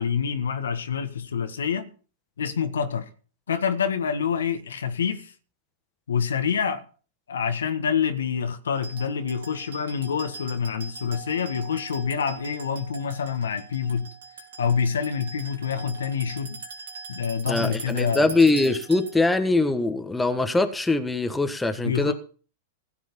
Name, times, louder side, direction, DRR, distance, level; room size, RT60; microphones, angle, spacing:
voice 1, 0.0-1.9 2.4-3.1 3.5-5.3 6.1-6.8 7.3-14.1 14.6-16.6 17.1-18.4 21.8-22.1, left 7 dB, 80° left, 1.6 m, -27 dB
sound 1, 8.8-19.3, right 5 dB, 80° right, 3.4 m, -42 dB
voice 2, 17.5-22.1, left 2 dB, 10° left, 1.5 m, -22 dB
15.5 x 7.7 x 5.4 m
hypercardioid pair, 105°, 0 cm